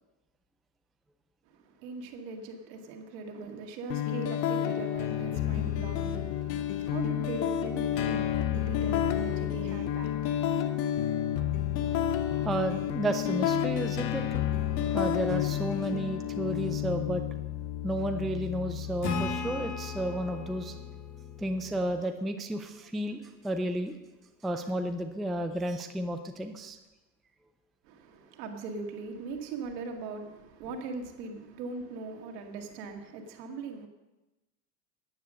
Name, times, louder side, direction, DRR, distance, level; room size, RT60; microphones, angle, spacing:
voice 1, 1.5-11.1 27.8-33.9, right 4 dB, 75° right, 2.1 m, -40 dB
sound 1, 3.9-21.9, left 10 dB, 75° left, 1.1 m, -31 dB
voice 2, 12.4-14.4 14.9-17.2 17.8-20.7 21.4-23.9 24.4-26.8, right 1 dB, ahead, 0.4 m, -32 dB
Acoustic guitar / Strum, 19.0-22.5, left 3 dB, 45° left, 2.7 m, -37 dB
10.0 x 9.5 x 6.3 m
supercardioid pair, 120°, 50 cm